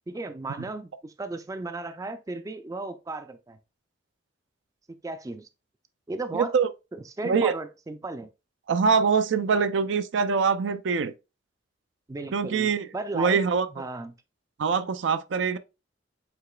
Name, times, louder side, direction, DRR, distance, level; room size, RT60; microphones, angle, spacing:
voice 1, 0.1-3.6 5.0-5.5 6.1-6.6 7.1-8.3 12.1-14.1, right 3 dB, 20° right, 0.3 m, -35 dB
voice 2, 6.3-6.7 7.2-7.5 8.7-11.1 12.3-12.9 13.1-13.7 14.6-15.6, right 5 dB, 80° right, 0.4 m, -24 dB
7.8 x 2.9 x 2.3 m
head